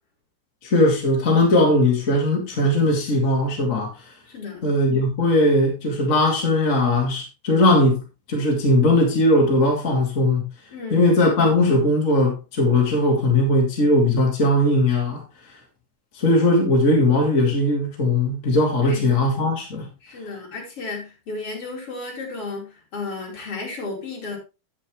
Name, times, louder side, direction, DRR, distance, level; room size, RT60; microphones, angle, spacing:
voice 1, 0.6-3.9 4.6-8.0 8.3-10.4 10.9-15.2 16.2-19.9, left 1 dB, 25° left, 2.5 m, -19 dB
voice 2, 4.3-4.6 10.7-11.1 18.8-19.1 20.0-24.4, left 3 dB, 50° left, 3.8 m, -33 dB
10.0 x 9.1 x 3.2 m
omnidirectional pair, 3.5 m